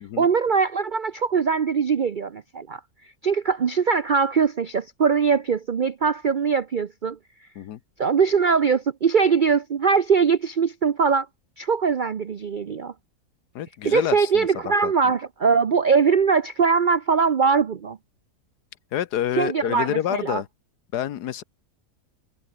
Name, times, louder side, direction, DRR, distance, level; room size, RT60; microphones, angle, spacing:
voice 1, 0.2-2.8 3.2-7.2 8.0-11.3 11.6-12.9 13.8-18.0 19.4-20.4, right 5 dB, 50° right, 0.6 m, -21 dB
voice 2, 13.5-14.5 14.8-15.1 18.9-20.5 20.9-21.4, left 11 dB, 80° left, 1.4 m, -28 dB
omnidirectional pair, 1.7 m